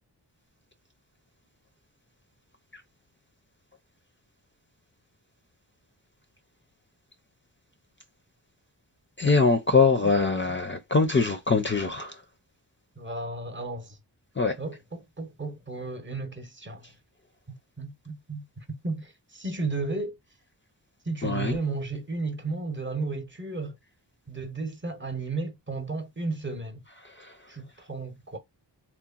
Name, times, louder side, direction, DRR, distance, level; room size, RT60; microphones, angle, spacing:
voice 1, 9.2-12.1 14.4-14.5 21.2-21.6 27.2-27.3, left 4 dB, 25° left, 0.5 m, -23 dB
voice 2, 10.0-10.4 13.0-14.0 14.6-16.9 17.8-20.1 21.0-23.8 24.3-26.8 27.5-28.4, right 3 dB, 25° right, 0.9 m, -34 dB
2.9 x 2.1 x 2.4 m
cardioid pair, 55°, 44 cm